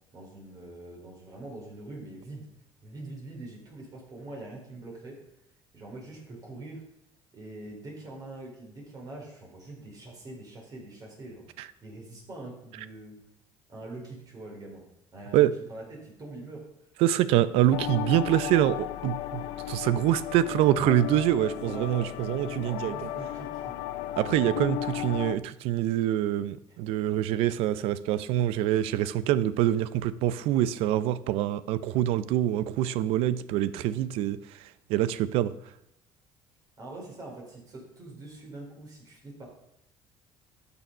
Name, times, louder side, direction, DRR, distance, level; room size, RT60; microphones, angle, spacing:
voice 1, 0.1-2.5 2.8-5.2 5.7-6.8 7.3-13.2 13.7-14.8 15.1-16.6 21.4-22.1 22.6-23.8 26.7-26.8 36.8-39.5, right 2 dB, 40° right, -1 dB, 4.5 m, -43 dB
voice 2, 17.0-19.4 19.7-23.1 24.2-34.4 34.9-35.5, right 12 dB, 80° right, 16 dB, 0.6 m, -25 dB
sound 1, 17.7-25.4, left 13 dB, 90° left, 0.5 m, -35 dB
12.0 x 7.1 x 5.4 m, 0.81 s
cardioid pair, 100°, 10 cm